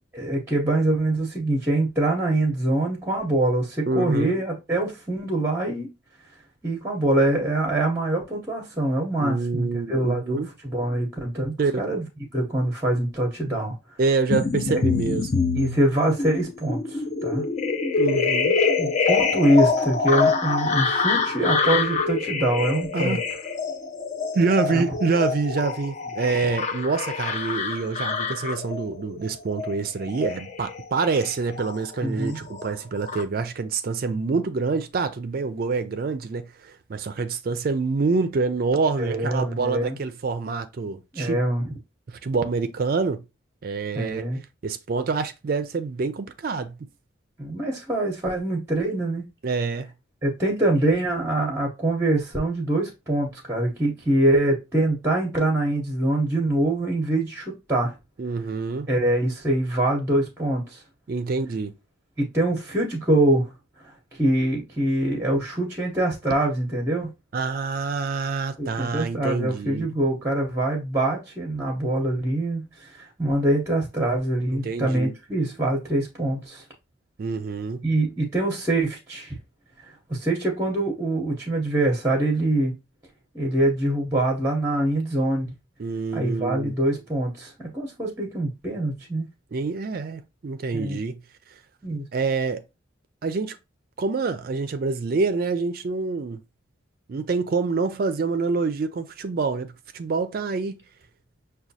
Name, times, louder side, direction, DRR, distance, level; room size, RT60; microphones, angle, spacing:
voice 1, 0.1-5.9 6.6-12.0 12.3-13.7 14.7-14.8 15.5-17.4 18.8-23.2 24.7-24.9 32.0-32.4 39.0-40.0 41.1-41.8 44.0-44.4 47.4-49.2 50.2-57.9 58.9-60.8 62.2-63.5 63.8-67.1 68.6-76.6 77.8-79.4 79.8-82.8 83.3-85.5 86.1-89.3 90.7-91.0 91.8-92.0, right 1 dB, 15° right, 0.7 m, -24 dB
voice 2, 3.9-4.3 9.2-10.5 11.6-11.9 14.0-15.3 18.0-18.5 22.9-23.3 24.3-41.4 42.1-43.2 43.6-44.2 44.6-46.8 49.4-49.9 58.2-58.9 61.1-61.7 67.3-69.9 74.5-75.1 77.2-77.8 85.8-86.7 89.5-91.2 92.1-92.6 93.2-93.6 94.0-96.4 97.1-100.8, right 4 dB, 50° right, 0.4 m, -26 dB
sound 1, 14.3-32.1 32.4-33.2, left 4 dB, 35° left, 0.5 m, -25 dB
6.0 x 2.2 x 2.7 m
head